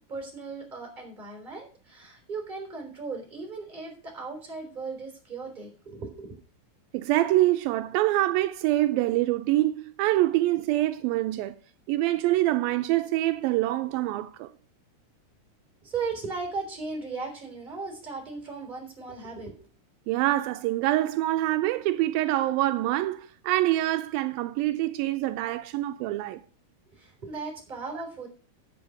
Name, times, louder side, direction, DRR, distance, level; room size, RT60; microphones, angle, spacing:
voice 1, 0.1-6.4 15.8-19.6 26.9-28.3, right 4 dB, 15° right, 3.6 m, -37 dB
voice 2, 6.9-11.6 11.9-14.5 20.1-26.4, right 16 dB, 85° right, 2.4 m, -25 dB
8.7 x 7.8 x 6.3 m
omnidirectional pair, 4.1 m